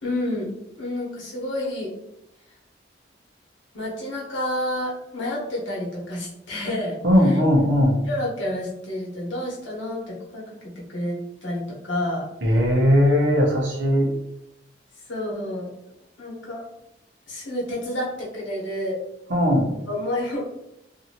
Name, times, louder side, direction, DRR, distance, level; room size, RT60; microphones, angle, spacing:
voice 1, 0.0-0.5 0.8-1.9 3.7-7.0 7.2-7.4 8.0-12.2 15.1-15.7 16.2-16.6 17.3-19.0 19.9-20.4, left 1 dB, 90° left, -4 dB, 1.1 m, -29 dB
voice 2, 7.0-8.0 12.4-14.1 19.3-19.7, equal, 75° right, -1 dB, 0.9 m, -18 dB
2.8 x 2.6 x 2.8 m, 0.83 s
head